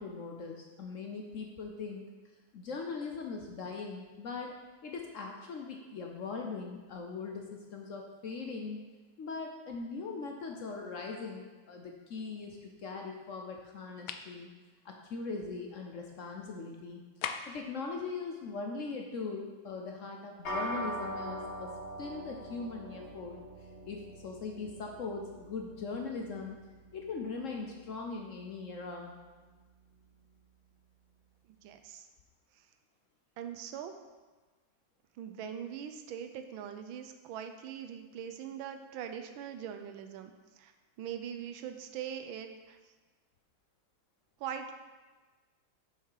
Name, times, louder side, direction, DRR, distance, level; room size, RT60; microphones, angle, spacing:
voice 1, 0.0-2.0 2.5-4.5 4.8-8.8 9.2-14.5 14.8-17.1 17.5-23.4 23.9-26.6 26.9-29.2, left 4 dB, 65° left, 2 dB, 0.8 m, -40 dB
sound 1, 14.1-14.3 17.2-17.7, left 8 dB, 80° left, 1.3 m, -38 dB
sound 2, 20.4-30.0, equal, 35° left, 1.6 m, -43 dB
voice 2, 31.6-32.1 33.4-33.9 35.2-40.3 40.6-40.7 41.0-42.8 44.4-44.7, right 8 dB, 85° right, 6 dB, 1.4 m, -41 dB
6.6 x 6.3 x 4.8 m, 1.3 s
omnidirectional pair, 2.2 m